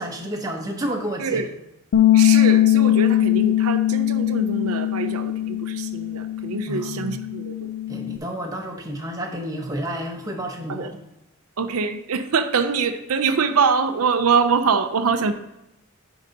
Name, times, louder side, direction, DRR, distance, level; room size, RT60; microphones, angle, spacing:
voice 1, 0.0-1.4 6.7-7.2 7.9-11.0, right 1 dB, 15° right, 1 dB, 1.0 m, -30 dB
voice 2, 1.2-1.5 2.1-7.7 10.7-10.9 11.6-15.3, right 5 dB, 85° right, 9 dB, 0.6 m, -24 dB
Bass guitar, 1.9-8.2, left 12 dB, 80° left, 0.4 m, -20 dB
9.8 x 3.9 x 5.2 m, 0.88 s
head